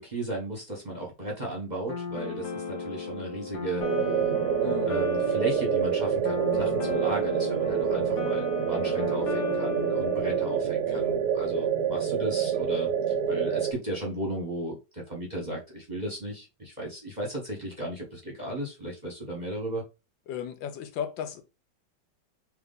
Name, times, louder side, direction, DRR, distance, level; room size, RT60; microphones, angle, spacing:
voice 1, 0.0-3.8 4.8-19.8, right 1 dB, 30° right, 0.8 m, -35 dB
sound 1, 1.9-10.6, left 6 dB, 65° left, 1.3 m, -35 dB
sound 2, 3.8-13.7, right 8 dB, 75° right, 1.0 m, -27 dB
voice 2, 20.3-21.4, left 9 dB, 85° left, 1.4 m, -35 dB
3.5 x 3.0 x 3.7 m
omnidirectional pair, 2.0 m